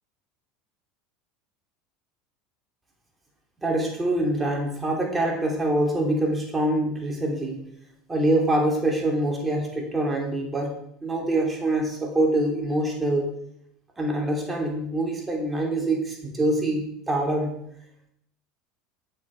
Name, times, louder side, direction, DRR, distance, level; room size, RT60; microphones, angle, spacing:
voice 1, 3.6-7.7 8.1-10.7 11.0-13.3 14.0-17.6, right 1 dB, 15° right, 0 dB, 3.1 m, -25 dB
10.0 x 8.8 x 4.8 m, 0.72 s
supercardioid pair, 100°, 0 cm